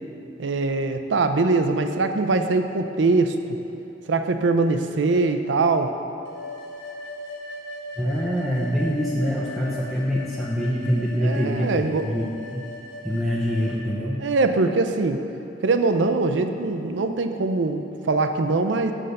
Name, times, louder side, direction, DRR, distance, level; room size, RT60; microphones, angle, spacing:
voice 1, 0.4-3.6 4.1-5.9 11.2-12.0 14.2-15.2 15.6-18.9, right 3 dB, 85° right, 7 dB, 0.5 m, -22 dB
sound 1, 6.3-13.8, left 1 dB, 75° left, 1.2 m, -38 dB
voice 2, 8.0-12.7 13.0-14.2, equal, ahead, -7 dB, 0.6 m, -25 dB
6.5 x 5.5 x 6.5 m, 2.8 s
head